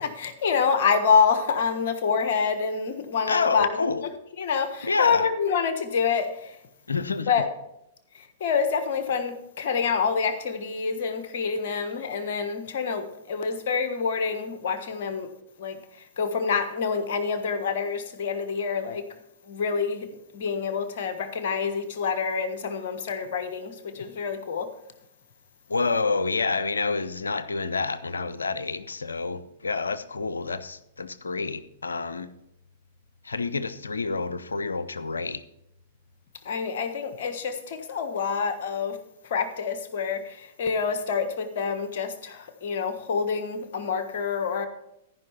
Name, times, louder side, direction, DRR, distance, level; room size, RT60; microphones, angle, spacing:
voice 1, 0.0-4.1 4.4-6.6 7.3-7.5 8.1-15.3 15.6-15.8 16.2-19.1 19.5-20.1 20.3-24.7 36.4-39.0 39.2-44.7, left 5 dB, 60° left, 1.3 m, -27 dB
voice 2, 3.3-4.0 4.8-5.3 6.9-7.3 25.7-32.3 33.2-35.4, left 4 dB, 85° left, 0.6 m, -28 dB
14.0 x 5.6 x 5.7 m
hypercardioid pair, 105°, 0 cm